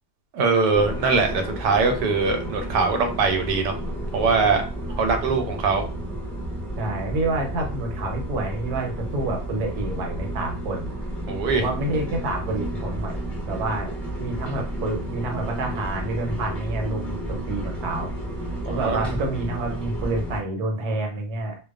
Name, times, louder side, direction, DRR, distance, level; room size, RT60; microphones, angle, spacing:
voice 1, 0.3-3.7 4.1-4.6 5.0-5.8 11.3-11.6 18.7-19.2, right 4 dB, 90° right, 5 dB, 1.2 m, -22 dB
sound 1, 0.7-20.4, right 1 dB, ahead, 0.4 m, -32 dB
voice 2, 6.8-10.9 11.5-13.2 13.5-13.9 14.2-18.1 18.7-21.6, right 2 dB, 75° right, 2 dB, 1.2 m, -28 dB
2.6 x 2.2 x 2.3 m, 0.35 s
omnidirectional pair, 1.8 m